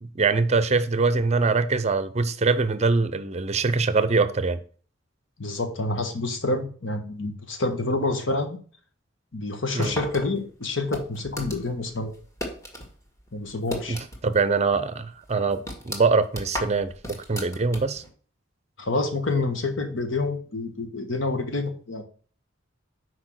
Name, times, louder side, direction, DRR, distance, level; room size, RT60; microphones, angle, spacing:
voice 1, 0.0-4.6 9.7-9.9 13.9-18.0, right 4 dB, 35° right, 0.6 m, -23 dB
voice 2, 5.4-8.6 9.3-12.1 13.3-14.0 18.8-22.0, left 2 dB, 75° left, 1.3 m, -28 dB
sound 1, 9.8-12.9 13.2-14.4 14.7-14.8 15.3-18.1, left 1 dB, 15° left, 1.8 m, -35 dB
6.1 x 4.7 x 6.3 m
head